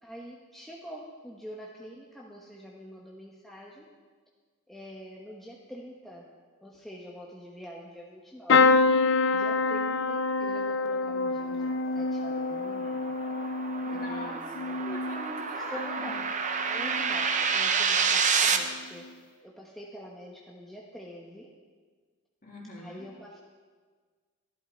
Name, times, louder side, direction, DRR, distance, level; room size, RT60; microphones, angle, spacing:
voice 1, 0.0-3.9 4.7-6.2 6.6-13.0 13.9-14.9 15.7-16.2 16.7-19.1 19.4-21.5 22.8-23.4, equal, ahead, -3 dB, 1.1 m, -45 dB
sound 1, 8.5-16.3 16.8-17.3 18.6-18.8 19.0-19.1, left 3 dB, 60° left, 0.5 m, -27 dB
sound 2, 11.7-18.6, right 6 dB, 35° right, 0.8 m, -29 dB
voice 2, 13.8-16.2 22.4-23.1, left 1 dB, 40° left, -3 dB, 2.8 m, -42 dB
14.0 x 11.5 x 4.4 m, 1.5 s
head